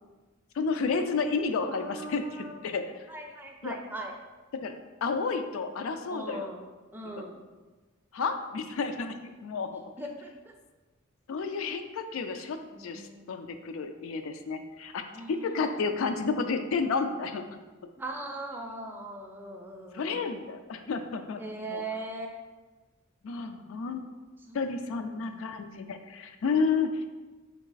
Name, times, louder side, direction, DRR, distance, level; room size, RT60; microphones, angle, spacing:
voice 1, 0.6-2.3 2.6-2.9 3.6-3.8 4.6-4.7 5.0-6.5 8.1-9.8 11.3-13.0 13.3-15.0 15.3-17.4 19.9-21.4 21.7-21.8 23.2-24.0 24.5-27.1, left 4 dB, 75° left, 7 dB, 0.4 m, -31 dB
voice 2, 1.7-2.5 3.1-4.1 6.1-6.6 6.9-7.4 10.0-10.5 12.7-13.6 15.1-15.8 18.0-20.3 21.4-22.4 24.5-25.6, right 2 dB, 10° right, 1 dB, 0.4 m, -40 dB
3.5 x 3.2 x 3.9 m, 1.2 s
head